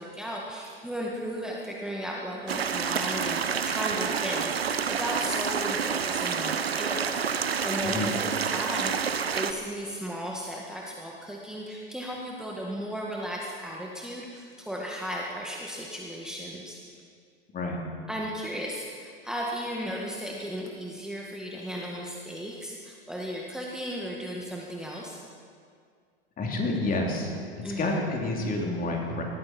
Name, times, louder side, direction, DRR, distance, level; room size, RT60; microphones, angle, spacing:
voice 1, 0.0-8.9 9.3-16.8 18.1-25.2 27.6-28.0, equal, ahead, -3 dB, 1.9 m, -35 dB
sound 1, 2.5-9.5, right 6 dB, 85° right, 0.8 m, -28 dB
voice 2, 7.8-8.1 17.5-17.8 26.4-27.3 27.8-29.2, left 2 dB, 30° left, 0 dB, 3.2 m, -29 dB
19.0 x 14.5 x 4.5 m, 2.1 s
figure-of-eight pair, 85°, 30 cm